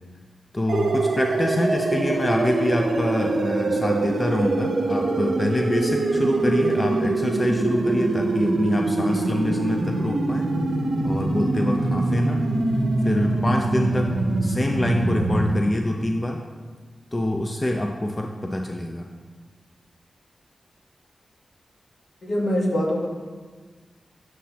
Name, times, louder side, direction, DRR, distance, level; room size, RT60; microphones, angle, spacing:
voice 1, 0.5-10.5 11.0-12.4 13.0-14.1 14.4-16.4 17.1-19.1, left 1 dB, 25° left, 3 dB, 0.4 m, -25 dB
sound 1, 0.7-15.6, right 2 dB, 85° right, 0.5 m, -24 dB
voice 2, 22.2-23.1, equal, 65° left, -1 dB, 1.1 m, -23 dB
7.4 x 5.7 x 2.8 m, 1.4 s
wide cardioid pair, 105°, 0 cm